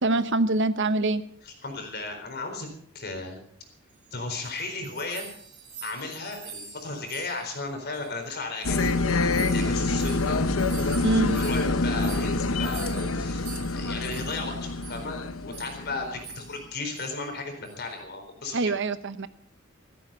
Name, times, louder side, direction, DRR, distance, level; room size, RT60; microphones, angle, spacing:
voice 1, 0.0-1.2 11.0-11.4 18.5-19.3, right 2 dB, 60° right, 13 dB, 0.9 m, -24 dB
voice 2, 1.4-2.7 2.9-3.4 4.1-5.3 5.8-8.9 9.2-10.4 10.8-18.7, left 3 dB, 50° left, 5 dB, 4.2 m, -35 dB
sound 1, 4.1-8.3 8.6-14.5 14.8-15.1 15.5-15.9 16.2-16.7 16.9-17.1 17.7-17.9, right 7 dB, 45° right, 3.2 m, -45 dB
sound 2, 8.6-16.4, left 3 dB, 75° left, 1.0 m, -26 dB
14.5 x 14.0 x 5.6 m, 0.62 s
head